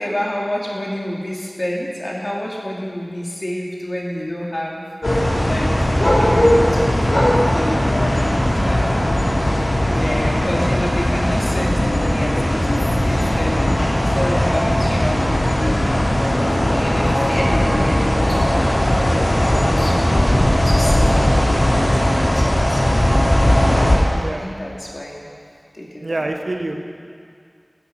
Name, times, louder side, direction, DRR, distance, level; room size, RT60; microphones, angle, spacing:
voice 1, 0.0-7.0 7.3-12.7 13.0-16.2 16.6-18.8 19.1-22.8 23.7-25.3 25.7-26.3 26.7-26.8, left 1 dB, 50° left, -4 dB, 3.0 m, -29 dB
sound 1, 5.0-24.0, left 1 dB, 75° left, 3.2 m, -18 dB
voice 2, 26.0-26.8, right 2 dB, 75° right, 3 dB, 1.2 m, -26 dB
19.5 x 8.5 x 5.8 m, 2.3 s
wide cardioid pair, 40°, 0 cm